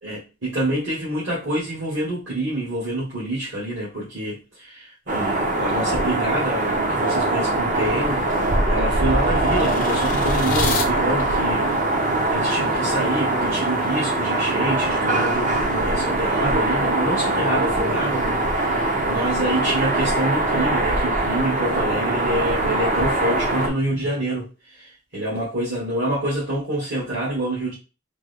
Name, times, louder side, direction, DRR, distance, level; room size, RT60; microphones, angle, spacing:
voice 1, 0.0-27.7, right 1 dB, 60° right, 1.4 m, -27 dB
sound 1, 5.1-23.7, right 2 dB, 40° right, 0.5 m, -22 dB
sound 2, 7.9-10.9, left 5 dB, 40° left, 0.4 m, -32 dB
3.6 x 2.0 x 3.4 m
head